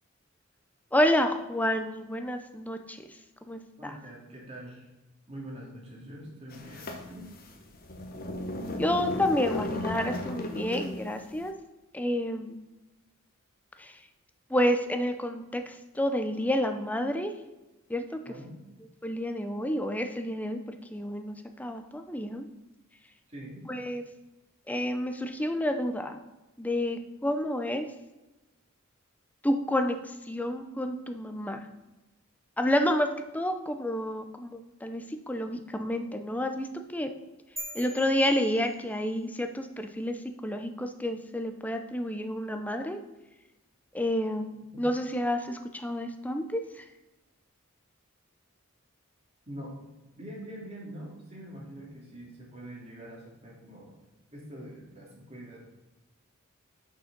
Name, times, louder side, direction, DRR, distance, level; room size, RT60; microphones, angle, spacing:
voice 1, 0.9-3.0 3.4-3.9 8.8-11.5 11.9-12.6 13.8-13.9 14.5-17.3 17.9-18.2 19.0-22.5 23.7-24.0 24.7-26.2 26.6-27.9 29.4-30.0 30.3-31.6 32.6-37.1 37.7-40.2 40.4-43.0 43.9-46.6, left 1 dB, 5° left, 6 dB, 0.6 m, -29 dB
voice 2, 3.8-4.9 5.3-7.3 18.3-18.6 23.3-23.7 44.8-44.9 49.5-49.7 50.2-53.9 54.3-55.6, right 1 dB, 30° right, -3 dB, 2.5 m, -44 dB
sound 1, 6.5-11.2, left 1 dB, 45° left, 1.1 m, -35 dB
sound 2, 37.6-39.3, right 1 dB, 15° right, 1.6 m, -43 dB
6.4 x 6.1 x 6.0 m, 1.1 s
head